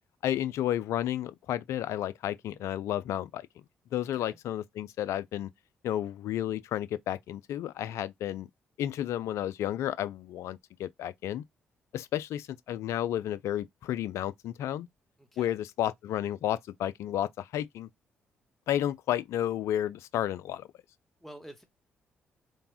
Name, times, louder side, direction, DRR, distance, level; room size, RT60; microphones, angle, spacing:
voice 1, 0.2-3.5 3.9-5.5 5.8-8.5 8.8-11.4 11.9-14.9 15.4-17.9 18.7-20.7, left 12 dB, 65° left, 0.3 m, -32 dB
voice 2, 4.0-4.4 15.2-15.6 21.2-21.6, equal, 5° left, 0.9 m, -49 dB
3.3 x 2.1 x 2.4 m
hypercardioid pair, 45°, 5 cm